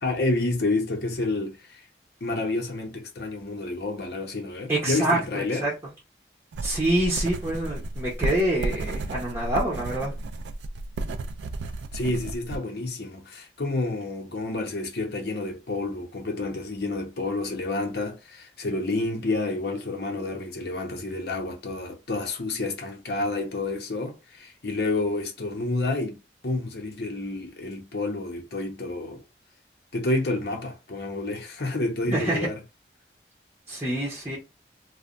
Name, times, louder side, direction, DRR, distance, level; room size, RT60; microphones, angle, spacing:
voice 1, 0.0-1.8 2.2-5.6 11.9-26.2 26.4-29.2 29.9-32.6, left 2 dB, 70° left, 0.8 m, -29 dB
voice 2, 4.7-5.9 6.6-10.1 32.1-32.5 33.7-34.4, right 1 dB, 15° right, 0.8 m, -26 dB
sound 1, 6.5-12.6, right 2 dB, 85° right, 0.3 m, -32 dB
3.2 x 2.1 x 2.5 m
head